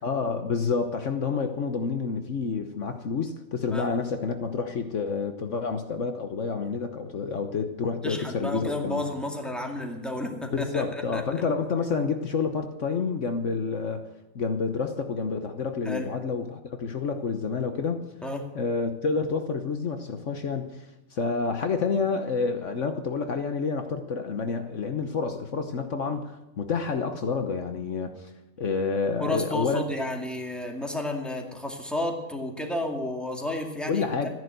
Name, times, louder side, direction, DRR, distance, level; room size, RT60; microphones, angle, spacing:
voice 1, 0.0-9.1 10.5-14.1 14.3-18.0 18.5-20.8 21.1-28.3 28.6-29.8 33.9-34.3, left 5 dB, 60° left, 7 dB, 1.3 m, -29 dB
voice 2, 8.0-11.2 15.8-16.1 18.2-18.5 29.2-34.3, left 1 dB, ahead, 2 dB, 2.1 m, -32 dB
14.5 x 10.5 x 7.9 m, 0.95 s
omnidirectional pair, 1.5 m